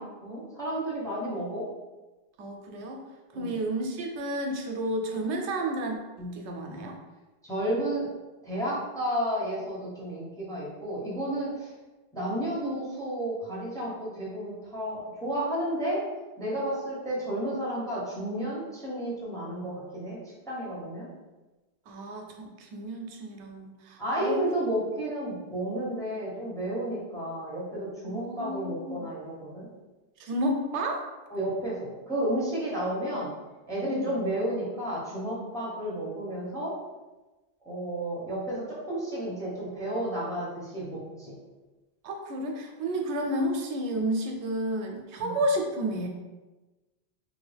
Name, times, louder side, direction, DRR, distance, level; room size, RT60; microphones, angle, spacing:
voice 1, 0.0-1.7 3.3-3.5 7.4-8.1 8.4-11.7 12.1-16.0 16.4-21.1 24.0-29.7 31.3-33.3 33.7-36.8 37.7-41.4 45.2-45.3, right 1 dB, 5° left, -7 dB, 0.7 m, -32 dB
voice 2, 2.4-3.0 3.3-7.0 21.9-24.4 28.0-29.1 30.2-31.1 33.8-34.1 42.0-46.1, right 1 dB, 85° right, 2 dB, 0.9 m, -31 dB
2.9 x 2.5 x 3.3 m, 1.2 s
omnidirectional pair, 1.1 m